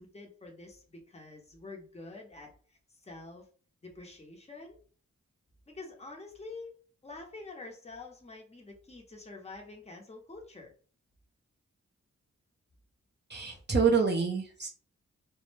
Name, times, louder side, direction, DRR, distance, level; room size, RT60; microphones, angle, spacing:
voice 1, 0.0-3.5 3.8-4.8 5.7-10.7, left 3 dB, 20° left, 1 dB, 0.8 m, -47 dB
voice 2, 13.3-14.7, right 5 dB, 35° right, -1 dB, 0.7 m, -27 dB
2.1 x 2.1 x 3.2 m, 0.40 s
cardioid pair, 55°, 30 cm